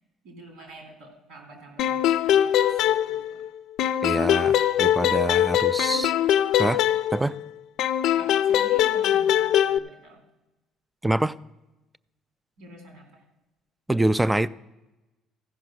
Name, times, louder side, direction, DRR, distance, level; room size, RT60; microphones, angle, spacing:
voice 1, 0.2-3.4 5.9-6.1 8.1-10.2 12.6-13.2, right 2 dB, 80° right, 3.4 m, -47 dB
sound 1, 1.8-3.5 3.8-7.4 7.8-9.8, left 11 dB, 70° left, 0.4 m, -22 dB
voice 2, 4.0-6.1 6.6-6.8 7.1-7.4 11.0-11.3 13.9-14.5, right 1 dB, 10° right, 0.3 m, -25 dB
14.5 x 5.4 x 6.3 m
cardioid pair, 115°, 0 cm